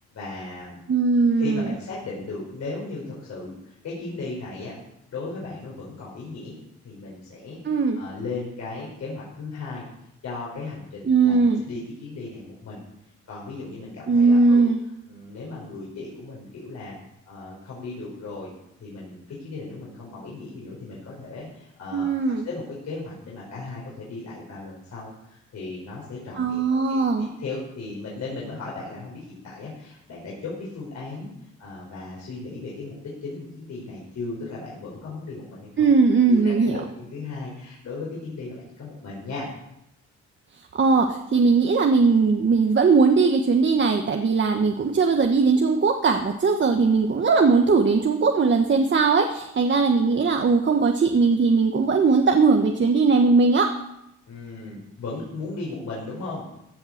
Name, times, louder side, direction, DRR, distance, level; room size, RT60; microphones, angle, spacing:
voice 1, 0.1-0.9 1.4-4.7 5.1-6.6 6.8-9.8 10.2-12.8 13.3-14.7 15.1-17.0 17.3-18.5 18.8-22.1 22.4-31.3 31.6-36.0 36.3-39.5 54.3-56.4, left 3 dB, 60° left, -5 dB, 5.0 m, -36 dB
voice 2, 0.9-1.7 7.6-8.0 11.1-11.6 14.1-14.8 21.9-22.5 26.4-27.3 35.8-36.8 40.7-53.7, right 4 dB, 40° right, 4 dB, 1.3 m, -19 dB
16.0 x 7.2 x 6.6 m, 0.82 s
cardioid pair, 90°, 30 cm